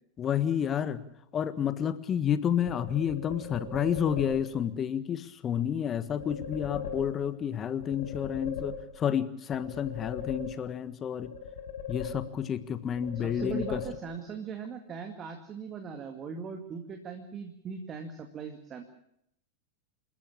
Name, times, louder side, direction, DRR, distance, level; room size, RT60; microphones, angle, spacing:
voice 1, 0.2-1.0 1.3-11.3 11.9-13.8, left 9 dB, 25° left, 14 dB, 1.5 m, -30 dB
sound 1, 2.7-4.6 6.1-7.5 7.8-9.2 9.5-10.9 11.2-12.6 12.9-14.3, left 5 dB, 65° left, 6.9 m, -39 dB
voice 2, 13.2-18.8, right 6 dB, 25° right, 5 dB, 2.2 m, -39 dB
27.5 x 14.0 x 8.7 m, 0.76 s
figure-of-eight pair, 90°, 0 cm